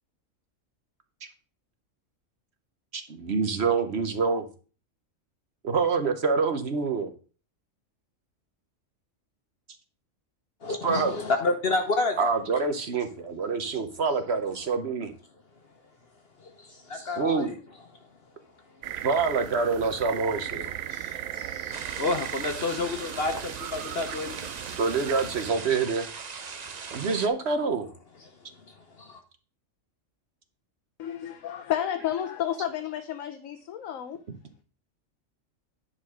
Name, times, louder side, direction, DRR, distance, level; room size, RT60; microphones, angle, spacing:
voice 1, 2.9-4.5 5.6-7.1 10.8-11.2 12.2-15.1 17.2-17.5 19.0-20.7 22.7-22.8 24.8-26.1 26.9-27.9, right 4 dB, 55° right, 1.2 m, -26 dB
voice 2, 10.6-12.3 16.4-17.6 20.1-20.2 20.9-24.4 28.7-29.2, left 3 dB, 50° left, 1.2 m, -30 dB
sound 1, 18.8-25.5, right 12 dB, 90° right, 1.0 m, -37 dB
sound 2, 21.7-27.3, right 5 dB, 40° right, 0.7 m, -39 dB
voice 3, 31.0-34.2, left 10 dB, 80° left, 1.1 m, -31 dB
10.0 x 4.2 x 6.2 m
omnidirectional pair, 1.4 m